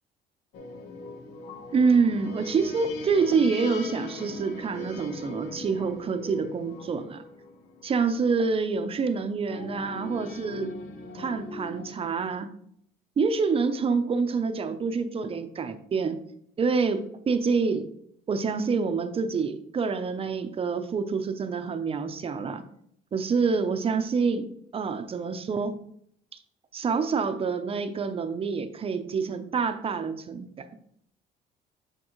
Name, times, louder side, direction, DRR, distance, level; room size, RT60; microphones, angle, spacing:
sound 1, 0.5-8.4 9.5-12.1, left 3 dB, 80° left, 1.1 m, -40 dB
voice 1, 1.7-7.2 7.8-10.7 11.1-12.5 13.2-16.2 16.6-17.8 18.3-22.6 23.1-24.5 24.7-25.8 26.7-30.8, right 5 dB, 35° right, 9 dB, 0.6 m, -27 dB
8.7 x 4.5 x 3.1 m, 0.69 s
cardioid pair, 110°, 17 cm